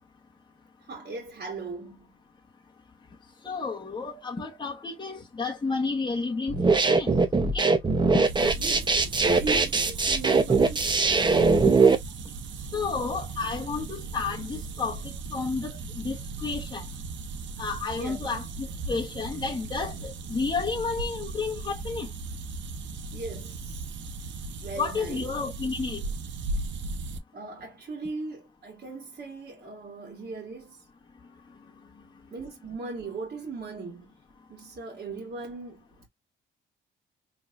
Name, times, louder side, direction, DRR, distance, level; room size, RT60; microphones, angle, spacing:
voice 1, 0.9-2.1 8.6-11.4 17.9-18.2 23.1-23.9 24.6-25.2 27.3-30.8 32.3-34.1 34.5-35.8, right 3 dB, 50° right, 1.7 m, -38 dB
voice 2, 3.4-7.1 7.5-7.7 12.7-16.9 17.6-22.1 24.8-26.0 32.0-32.1, left 4 dB, 20° left, 1.1 m, -31 dB
sound 1, 6.5-11.9, right 4 dB, 25° right, 0.8 m, -21 dB
sound 2, 8.2-27.2, right 3 dB, 70° right, 0.8 m, -37 dB
4.2 x 3.2 x 2.5 m
cardioid pair, 90°, 20 cm